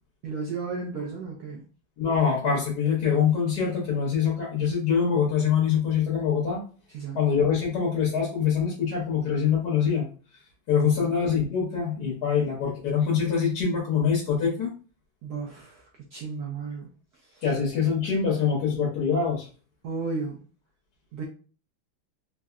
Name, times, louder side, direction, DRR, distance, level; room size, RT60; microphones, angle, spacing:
voice 1, 0.2-1.6 6.9-7.2 10.9-11.1 15.2-16.9 17.3-17.4 19.8-20.4 21.1-21.2, right 4 dB, 80° right, -1 dB, 0.8 m, -34 dB
voice 2, 2.0-6.6 7.1-10.1 10.7-14.7 17.4-19.5, left 6 dB, 60° left, -4 dB, 1.2 m, -24 dB
3.6 x 2.1 x 2.3 m, 0.38 s
omnidirectional pair, 2.2 m